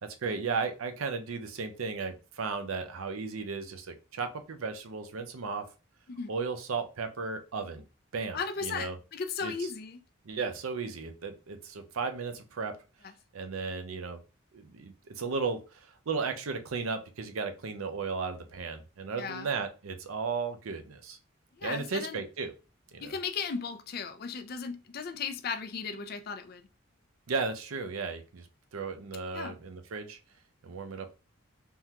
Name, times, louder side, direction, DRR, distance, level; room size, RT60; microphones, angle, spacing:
voice 1, 0.2-5.6 6.3-7.8 8.1-9.0 9.4-9.7 10.2-12.7 13.3-14.2 14.5-21.2 21.6-22.5 22.9-23.2 27.3-28.5 28.7-30.2 30.6-31.1, right 4 dB, 80° right, 0.5 m, -35 dB
voice 2, 8.3-10.0 19.2-19.5 21.5-22.2 23.0-26.7 29.3-29.6, left 5 dB, 45° left, 0.4 m, -36 dB
3.6 x 2.2 x 2.8 m
head